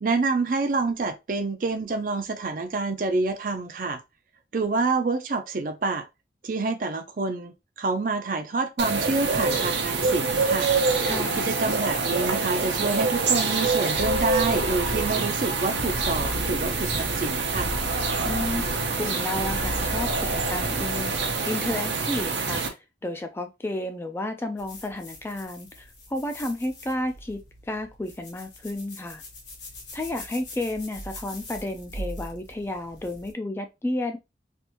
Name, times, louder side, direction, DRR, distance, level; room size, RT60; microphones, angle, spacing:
voice 1, 0.0-4.0 4.5-6.0 6.4-10.7 11.4-17.7, right 3 dB, 50° right, 0.5 m, -27 dB
sound 1, 8.8-22.7, right 4 dB, 85° right, 0.8 m, -26 dB
voice 2, 11.0-11.4 18.2-18.7 19.0-29.2 29.9-34.2, left 1 dB, 15° left, 0.3 m, -32 dB
sound 2, 13.9-21.2, left 1 dB, 65° left, 0.7 m, -34 dB
sound 3, 24.6-33.3, left 1 dB, 80° left, 1.3 m, -42 dB
3.4 x 2.5 x 2.9 m
head